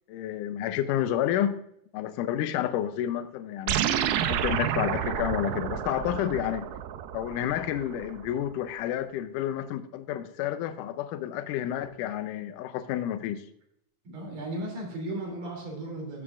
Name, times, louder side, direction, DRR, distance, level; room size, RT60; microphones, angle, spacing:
voice 1, 0.1-1.6 1.9-3.9 4.3-6.7 7.1-13.4, left 11 dB, 80° left, 2.1 m, -30 dB
sound 1, 3.7-8.3, right 10 dB, 90° right, 2.4 m, -30 dB
voice 2, 14.0-16.2, right 1 dB, 65° right, 4.4 m, -35 dB
14.0 x 7.2 x 2.5 m
omnidirectional pair, 3.9 m